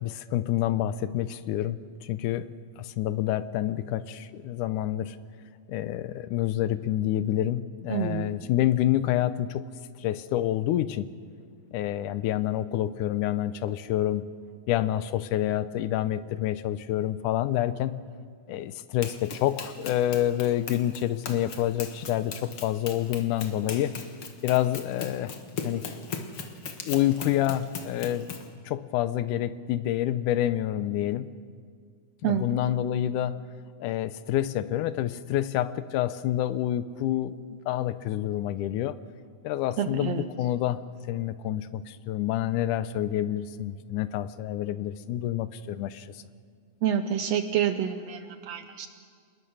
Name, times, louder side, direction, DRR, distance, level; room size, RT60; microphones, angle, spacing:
voice 1, 0.0-2.5 2.8-5.2 5.7-9.6 10.0-11.1 11.7-14.3 14.7-18.0 18.5-24.0 24.4-25.3 25.6-25.9 26.9-28.3 28.7-31.3 32.2-33.4 33.8-39.0 39.4-40.8 41.1-46.1, left 12 dB, 80° left, 14 dB, 2.2 m, -28 dB
voice 2, 7.9-8.3 32.2-32.4 39.8-40.2 46.8-48.9, right 9 dB, 70° right, 9 dB, 1.7 m, -28 dB
Run, 19.0-28.5, left 5 dB, 50° left, 2.1 m, -39 dB
26.5 x 21.0 x 6.4 m, 2.1 s
omnidirectional pair, 3.6 m